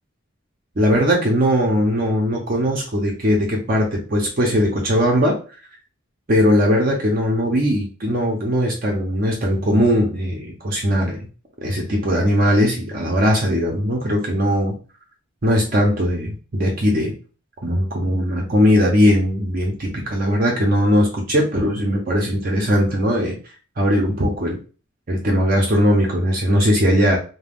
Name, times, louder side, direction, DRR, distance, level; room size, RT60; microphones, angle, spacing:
voice 1, 0.8-5.4 6.3-11.2 11.6-14.7 15.4-17.1 17.6-23.4 23.8-24.6 25.1-27.2, equal, 45° right, 0 dB, 0.6 m, -19 dB
2.4 x 2.2 x 3.5 m, 0.36 s
head